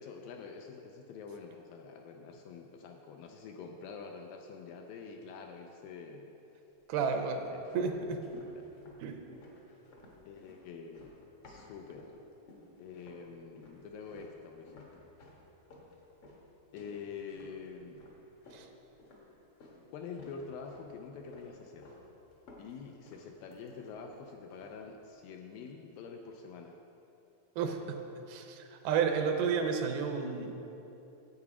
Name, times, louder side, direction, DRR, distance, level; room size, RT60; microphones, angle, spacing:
voice 1, 0.0-6.3 7.0-7.2 7.5-8.0 8.5-8.7 10.3-11.2 11.4-12.2 12.8-15.1 16.7-18.0 19.9-22.0 22.6-26.8, left 5 dB, 80° left, 3 dB, 2.1 m, -46 dB
voice 2, 6.9-7.4 7.7-8.2 9.0-9.2 18.5-18.7 27.6-28.0 28.3-30.5, right 6 dB, 80° right, 4 dB, 2.5 m, -31 dB
sound 1, 7.3-12.2 12.5-13.3 13.6-19.8 20.1-20.9 21.3-22.0 22.3-24.2 24.5-24.9, left 2 dB, 60° left, 1.5 m, -55 dB
9.6 x 8.3 x 4.9 m, 3.0 s
omnidirectional pair, 4.4 m